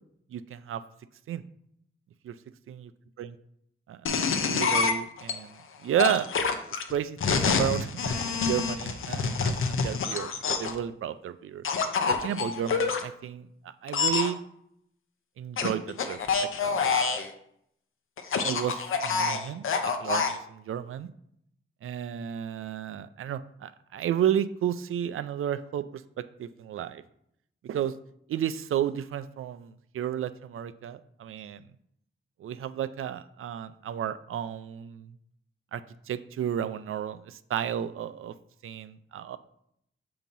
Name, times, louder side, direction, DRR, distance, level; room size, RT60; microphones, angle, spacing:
voice 1, 0.3-0.8 1.3-1.4 2.2-2.3 3.2-3.3 3.9-6.3 6.9-11.6 12.1-13.5 13.8-14.4 15.4-17.2 18.3-21.1 21.8-27.0 27.6-27.9 28.3-31.6 32.4-35.1 35.7-35.8 36.1-38.3 38.6-39.4, right 10 dB, 90° right, 12 dB, 0.4 m, -32 dB
sound 1, 4.1-5.3 6.0-10.8 11.6-13.0 13.9-14.3 15.6-17.3 18.2-20.4, left 5 dB, 75° left, 0.7 m, -27 dB
7.2 x 2.9 x 5.3 m, 0.72 s
wide cardioid pair, 155°, 21 cm